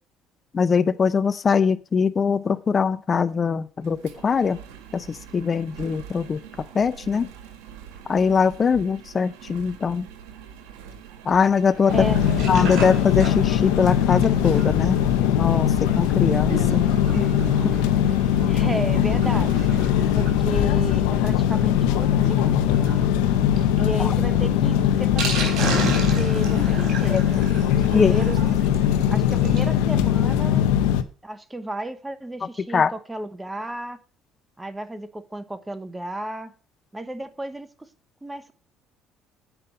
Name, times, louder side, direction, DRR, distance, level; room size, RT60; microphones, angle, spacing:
voice 1, 0.5-4.6 4.9-6.4 6.7-7.3 8.1-10.1 11.2-15.0 15.3-16.9 17.2-17.3 17.6-17.7 24.0-24.1 27.1-27.2 27.9-28.2 32.7-32.9, left 5 dB, 35° left, 0.5 m, -22 dB
Engine, 3.8-19.8, right 9 dB, 85° right, 1.5 m, -43 dB
Sink (filling or washing), 11.7-29.8 30.1-30.2 30.4-30.5 30.8-30.9, right 4 dB, 65° right, 4.0 m, -35 dB
sound 1, 11.9-31.0, left 10 dB, 85° left, 0.7 m, -21 dB
voice 2, 18.4-19.7 20.2-23.0 23.7-27.4 27.7-28.4 29.1-30.7 31.2-34.0 34.6-36.5 36.9-37.7 38.2-38.5, right 1 dB, 15° right, 1.1 m, -33 dB
8.4 x 5.3 x 6.9 m
supercardioid pair, 80°, 0 cm